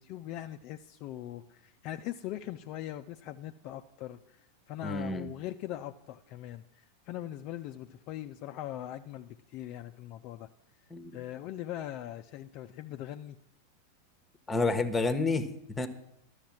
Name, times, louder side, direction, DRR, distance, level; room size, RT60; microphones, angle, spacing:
voice 1, 0.0-10.5 11.1-13.4, left 13 dB, 40° left, 8 dB, 0.4 m, -41 dB
voice 2, 4.8-5.3 10.9-11.1 14.5-15.5 15.8-15.9, left 3 dB, 10° left, 11 dB, 0.9 m, -29 dB
12.5 x 6.5 x 7.4 m, 0.82 s
figure-of-eight pair, 90°, 0 cm